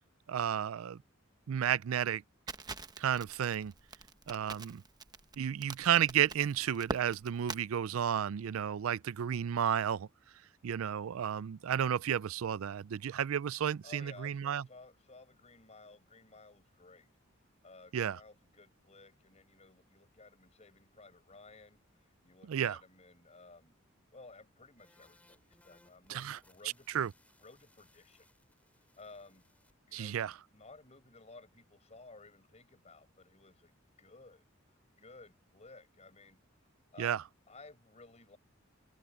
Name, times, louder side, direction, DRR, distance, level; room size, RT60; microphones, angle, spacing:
voice 1, 0.3-1.0 1.5-2.2 3.0-3.7 4.3-4.8 5.4-10.1 10.6-14.6 17.9-18.2 22.5-22.8 26.1-26.4 26.9-27.1 29.9-30.3 37.0-37.2, right 9 dB, 90° right, 0.4 m, -32 dB
Crackle, 2.5-7.6, right 3 dB, 20° right, 0.9 m, -43 dB
voice 2, 13.8-17.1 17.6-23.7 24.1-27.1 27.4-28.3 29.0-29.5 29.9-30.2 30.5-34.4 35.0-36.4 36.9-38.4, left 3 dB, 35° left, 4.9 m, -56 dB
sound 1, 24.8-29.7, left 1 dB, 5° left, 3.2 m, -67 dB
head